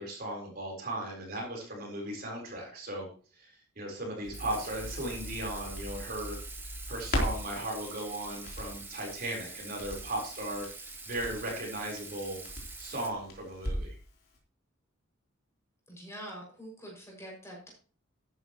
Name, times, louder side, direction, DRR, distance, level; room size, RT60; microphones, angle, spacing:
voice 1, 0.0-3.1 3.3-6.4 6.9-12.4 12.8-13.9, right 1 dB, 45° right, 0 dB, 4.2 m, -37 dB
Crackle, 4.2-14.0 14.3-14.4, equal, 50° left, 3.6 m, -40 dB
Water tap faucet / Sink (filling or washing), 4.3-13.1, right 3 dB, 10° right, 1.5 m, -45 dB
voice 2, 15.9-17.7, right 1 dB, 15° left, -2 dB, 6.2 m, -45 dB
13.0 x 11.0 x 3.1 m, 0.38 s
head